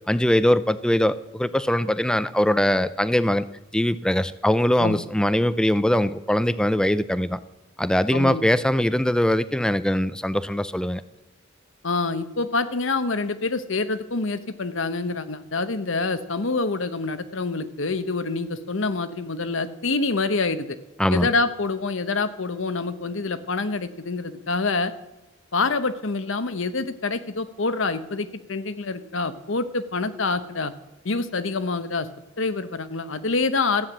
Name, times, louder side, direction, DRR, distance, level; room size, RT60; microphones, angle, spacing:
voice 1, 0.1-3.4 3.7-7.4 7.8-11.0 21.0-21.3, left 1 dB, 5° left, 14 dB, 0.5 m, -21 dB
voice 2, 8.1-8.4 11.8-20.8 21.1-24.9 25.5-30.7 31.0-32.1 32.4-33.9, left 3 dB, 65° left, 11 dB, 1.0 m, -26 dB
14.0 x 9.6 x 7.3 m, 1.0 s
head